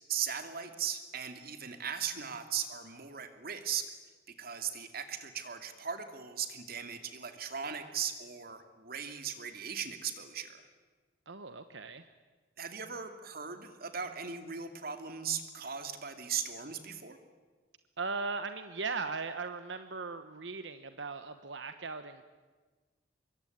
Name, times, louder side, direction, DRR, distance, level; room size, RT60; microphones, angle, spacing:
voice 1, 0.1-3.9 4.4-10.7 12.6-17.2, right 7 dB, 55° right, 7 dB, 2.6 m, -38 dB
voice 2, 11.3-12.1 18.0-22.3, right 4 dB, 75° right, 9 dB, 1.1 m, -38 dB
25.0 x 22.5 x 9.5 m, 1.4 s
head